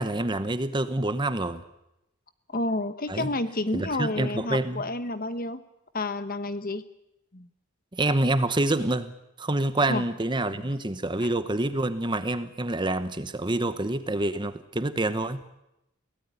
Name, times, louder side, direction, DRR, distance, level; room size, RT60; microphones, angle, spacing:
voice 1, 0.0-1.6 3.1-3.3 3.7-4.8 7.9-9.1 9.4-15.4, right 2 dB, 20° right, 12 dB, 0.9 m, -27 dB
voice 2, 2.5-5.6 5.9-6.8 7.3-7.5 9.9-10.0 10.5-10.7, left 2 dB, 40° left, 12 dB, 1.3 m, -30 dB
23.0 x 17.5 x 9.7 m, 0.88 s
head